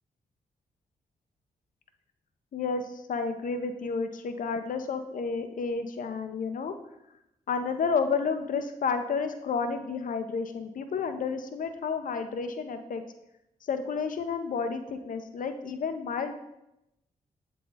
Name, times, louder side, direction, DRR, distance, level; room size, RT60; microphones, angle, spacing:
voice 1, 2.5-6.7 7.5-13.0 13.7-16.3, left 5 dB, 60° left, 7 dB, 0.6 m, -31 dB
7.4 x 3.9 x 4.1 m, 0.86 s
supercardioid pair, 40°, 15 cm